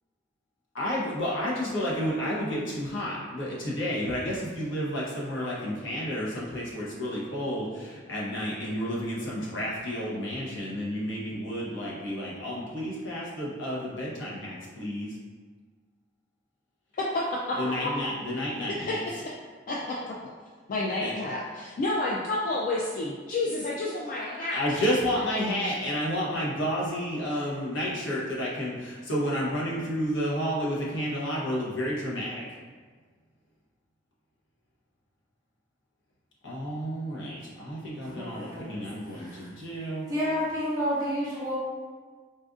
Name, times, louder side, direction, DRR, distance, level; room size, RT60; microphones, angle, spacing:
voice 1, 0.7-15.2 17.6-19.0 21.0-21.1 24.5-32.4 36.4-40.1, equal, 80° left, -6 dB, 0.9 m, -31 dB
voice 2, 16.9-17.4 18.7-19.4 19.7-20.1 20.7-24.6, left 2 dB, 45° left, -4 dB, 0.3 m, -30 dB
voice 3, 38.1-38.8 39.1-39.5 40.1-41.6, equal, 20° right, -8 dB, 1.1 m, -30 dB
4.1 x 2.5 x 2.4 m, 1.5 s
head